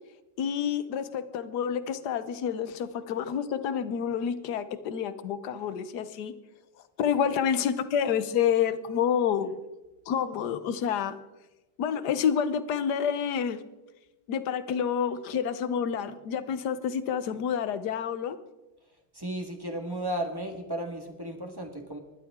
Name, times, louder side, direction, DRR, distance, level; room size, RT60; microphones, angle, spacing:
voice 1, 0.4-6.3 7.0-9.6 10.1-11.2 11.8-13.6 14.3-18.4, left 8 dB, 60° left, 12 dB, 1.3 m, -28 dB
voice 2, 19.1-22.0, right 1 dB, 10° right, 3 dB, 1.6 m, -34 dB
25.0 x 12.0 x 3.7 m, 1.1 s
omnidirectional pair, 2.3 m